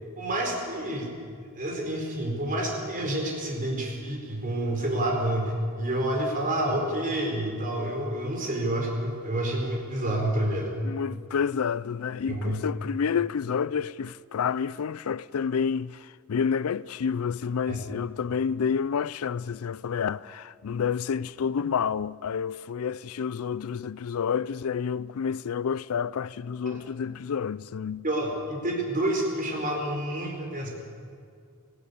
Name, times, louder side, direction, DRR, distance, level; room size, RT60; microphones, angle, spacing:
voice 1, 0.2-1.1 1.5-10.7 12.3-12.6 17.7-17.8 26.6-26.8 28.0-30.7, right 1 dB, 40° right, 4.5 m, -28 dB
voice 2, 10.8-28.0, left 6 dB, 80° left, 0.4 m, -29 dB
19.5 x 16.0 x 8.5 m
head